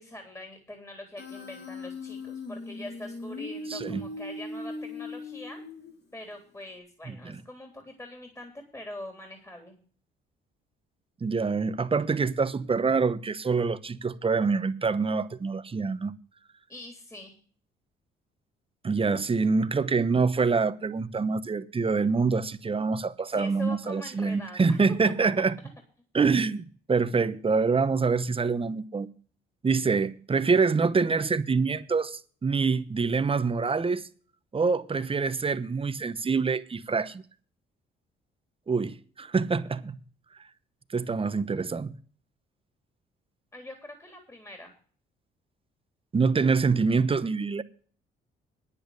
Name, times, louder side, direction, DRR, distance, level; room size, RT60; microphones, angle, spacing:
voice 1, 0.0-5.6 6.1-9.8 16.7-17.4 23.2-25.5 26.1-26.4 43.5-44.7, left 1 dB, 15° left, 3.5 m, -43 dB
Human voice, 1.2-6.1, left 2 dB, 55° left, 3.2 m, -39 dB
voice 2, 3.7-4.0 7.2-7.4 11.2-16.1 18.8-25.5 26.1-29.1 29.6-34.0 34.5-37.2 38.7-40.0 40.9-41.9 46.1-47.6, right 4 dB, 25° right, 0.9 m, -26 dB
10.0 x 8.8 x 6.8 m
cardioid pair, 90°, 20 cm